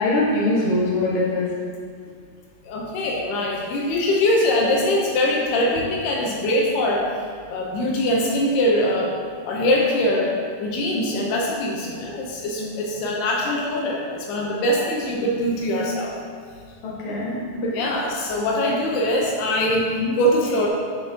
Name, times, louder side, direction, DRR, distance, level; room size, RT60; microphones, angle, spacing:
voice 1, 0.0-1.5 12.6-12.8 16.8-17.9 19.9-20.1, left 2 dB, 55° left, -6 dB, 1.7 m, -23 dB
voice 2, 2.6-7.1 7.5-9.1 9.4-16.1 17.7-19.9 20.2-20.7, left 1 dB, 75° left, -1 dB, 2.7 m, -22 dB
10.0 x 7.0 x 2.9 m, 2.2 s
omnidirectional pair, 4.9 m